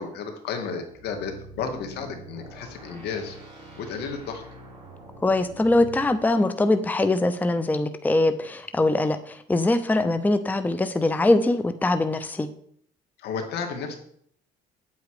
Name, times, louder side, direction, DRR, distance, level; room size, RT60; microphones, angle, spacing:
voice 1, 0.0-3.4 3.8-4.4 13.2-13.9, left 5 dB, 75° left, 4 dB, 2.2 m, -32 dB
sound 1, 0.9-6.2, right 1 dB, 25° right, 5.1 m, -45 dB
voice 2, 5.2-12.5, left 2 dB, 10° left, 10 dB, 0.7 m, -22 dB
9.3 x 8.3 x 4.9 m, 0.66 s
cardioid pair, 110°, 17 cm